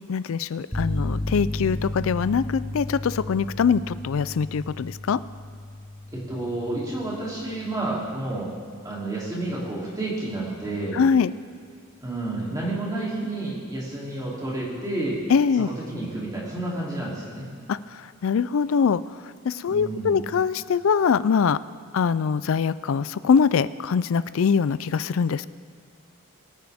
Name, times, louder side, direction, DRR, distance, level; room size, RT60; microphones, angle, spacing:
voice 1, 0.1-5.2 10.9-11.3 15.3-15.7 17.7-21.6 21.9-25.5, left 6 dB, 70° left, 16 dB, 0.4 m, -23 dB
sound 1, 0.7-8.4, left 1 dB, 10° left, 0.6 m, -34 dB
voice 2, 6.1-8.5 8.8-11.0 12.0-15.2 15.6-17.5 19.7-20.3, right 2 dB, 15° right, -6 dB, 3.0 m, -30 dB
22.5 x 9.1 x 3.5 m, 2.3 s
head